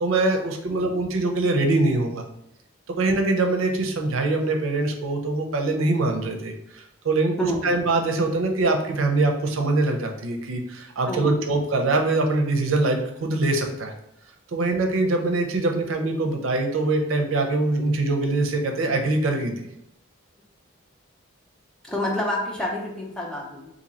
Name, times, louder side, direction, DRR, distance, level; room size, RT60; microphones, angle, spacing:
voice 1, 0.0-2.2 3.0-7.3 7.6-13.9 14.5-19.5, right 2 dB, 80° right, 4 dB, 0.5 m, -23 dB
voice 2, 7.4-7.8 11.0-11.5 21.8-23.7, left 1 dB, 5° left, -2 dB, 0.5 m, -29 dB
2.8 x 2.6 x 4.0 m, 0.81 s
head